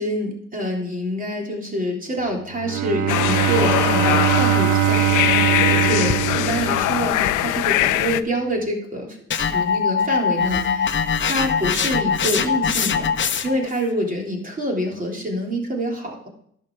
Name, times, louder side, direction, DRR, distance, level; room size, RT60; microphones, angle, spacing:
voice 1, 0.0-13.1 13.4-16.3, equal, 25° right, 0 dB, 3.4 m, -26 dB
Bowed string instrument, 2.5-7.4, right 12 dB, 75° right, 0.5 m, -21 dB
sound 1, 3.1-8.2, left 15 dB, 85° left, 0.6 m, -21 dB
sound 2, 9.3-13.7, left 6 dB, 40° left, 0.9 m, -22 dB
11.0 x 6.3 x 6.3 m, 0.68 s
cardioid pair, 90°, 30 cm